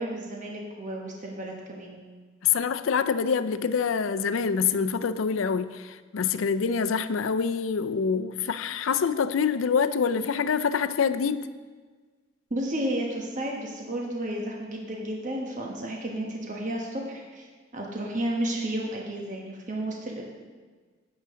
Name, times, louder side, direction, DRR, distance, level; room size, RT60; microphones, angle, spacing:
voice 1, 0.0-2.0 12.5-17.5 17.7-20.2, right 1 dB, 40° right, 1.1 m, -32 dB
voice 2, 2.4-11.5, left 6 dB, 80° left, 0.5 m, -26 dB
10.5 x 8.6 x 3.7 m
head